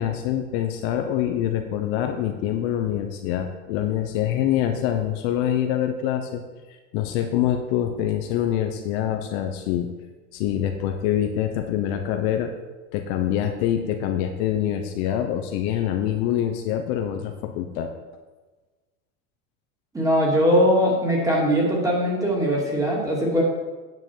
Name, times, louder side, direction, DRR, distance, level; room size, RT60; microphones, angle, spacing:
voice 1, 0.0-6.4 6.9-9.9 10.3-12.5 12.9-17.9, left 10 dB, 50° left, 5 dB, 1.0 m, -25 dB
voice 2, 19.9-23.4, equal, 10° right, -3 dB, 2.7 m, -21 dB
9.3 x 5.9 x 7.5 m, 1.3 s
supercardioid pair, 155°, 38 cm